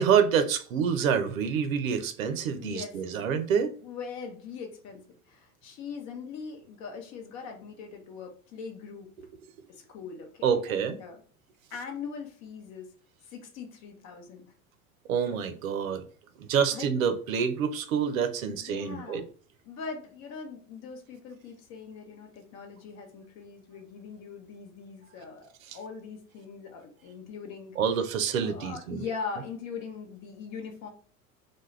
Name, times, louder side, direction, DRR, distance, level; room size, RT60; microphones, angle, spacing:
voice 1, 0.0-3.7 10.4-11.0 15.1-16.0 16.4-19.3 27.8-29.1, right 7 dB, 70° right, 0.5 m, -27 dB
voice 2, 2.6-3.0 3.5-5.0 5.3-9.1 9.7-11.2 11.7-12.9 13.2-14.5 16.7-17.1 18.4-19.2 19.6-27.8 28.4-30.9, left 5 dB, 40° left, 0.8 m, -41 dB
2.2 x 2.2 x 3.1 m
figure-of-eight pair, 80°, 42 cm